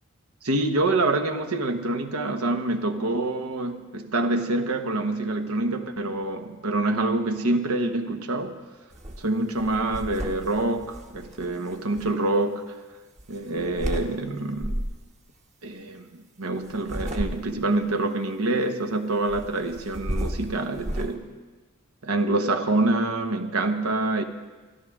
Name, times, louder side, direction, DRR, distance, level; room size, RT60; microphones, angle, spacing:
voice 1, 0.4-8.6 9.2-12.6 13.3-14.9 15.6-21.3 22.0-24.2, right 2 dB, 85° right, 7 dB, 1.1 m, -26 dB
sound 1, 8.9-9.2 9.5-12.0 13.2-14.1 14.6-15.0 16.6-17.7 19.3-21.1, equal, 35° right, 1.1 m, -33 dB
22.5 x 12.5 x 3.6 m, 1.3 s
head